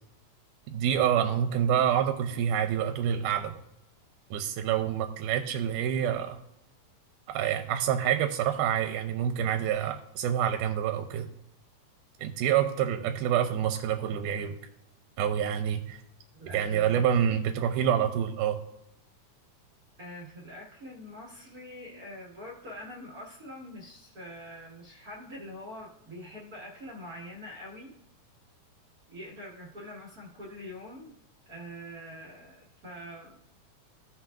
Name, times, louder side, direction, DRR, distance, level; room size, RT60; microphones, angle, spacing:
voice 1, 0.7-3.6 4.3-6.4 7.3-11.3 12.2-14.6 15.2-16.0 16.5-18.6, right 9 dB, 85° right, 5 dB, 2.1 m, -27 dB
voice 2, 16.3-17.4 20.0-27.9 29.1-31.1 31.5-33.4, equal, 45° right, -4 dB, 1.2 m, -44 dB
15.5 x 5.6 x 2.3 m, 0.82 s
omnidirectional pair, 3.6 m